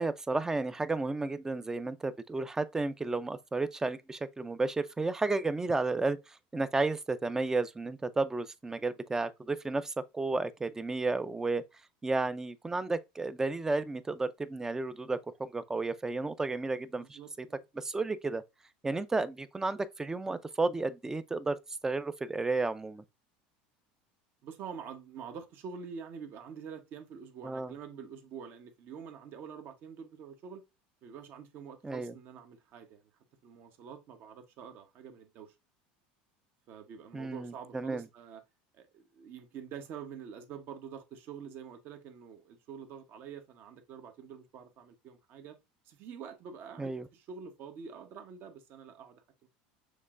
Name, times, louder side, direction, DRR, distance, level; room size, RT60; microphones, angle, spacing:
voice 1, 0.0-11.6 12.0-17.5 17.8-18.4 18.8-23.0 27.4-27.7 31.8-32.1 37.1-38.0 46.8-47.1, right 3 dB, 10° right, 0.4 m, -32 dB
voice 2, 17.0-17.7 24.4-30.6 31.0-33.1 33.4-35.5 36.7-38.4 38.7-45.6 45.8-49.5, right 7 dB, 50° right, 1.0 m, -46 dB
6.5 x 3.1 x 2.4 m
supercardioid pair, 110°, 4 cm